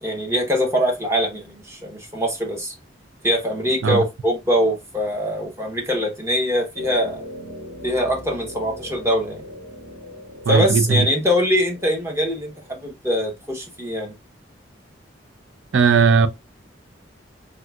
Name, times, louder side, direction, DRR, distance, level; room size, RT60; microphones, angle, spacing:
voice 1, 0.0-2.7 3.2-7.2 7.8-9.4 10.5-14.2, equal, 15° right, 0.8 m, -23 dB
sound 1, 6.7-12.8, left 1 dB, 45° right, 1.8 m, -39 dB
voice 2, 10.5-11.1 15.7-16.3, right 5 dB, 85° right, 0.4 m, -17 dB
3.7 x 2.6 x 2.2 m
head